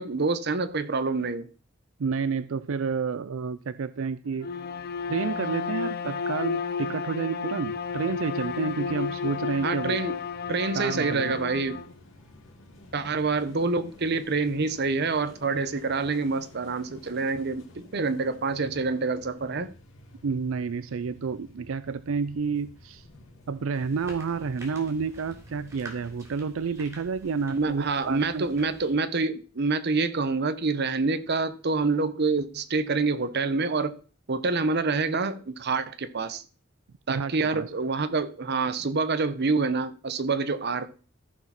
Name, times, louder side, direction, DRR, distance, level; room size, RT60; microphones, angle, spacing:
voice 1, 0.0-1.5 9.6-10.2 10.5-11.8 12.9-19.7 27.5-34.0 34.3-36.4 37.1-40.9, right 4 dB, 55° right, 0.9 m, -27 dB
voice 2, 2.0-4.5 5.1-10.0 10.7-11.3 20.2-23.0 23.5-28.5 37.1-37.7, right 5 dB, 85° right, 0.5 m, -30 dB
Bowed string instrument, 4.4-11.9, left 5 dB, 50° left, 0.5 m, -32 dB
sound 1, 7.6-26.2, left 1 dB, 75° left, 2.6 m, -52 dB
sound 2, 23.7-29.0, right 1 dB, 15° right, 3.2 m, -48 dB
14.0 x 4.8 x 5.9 m
head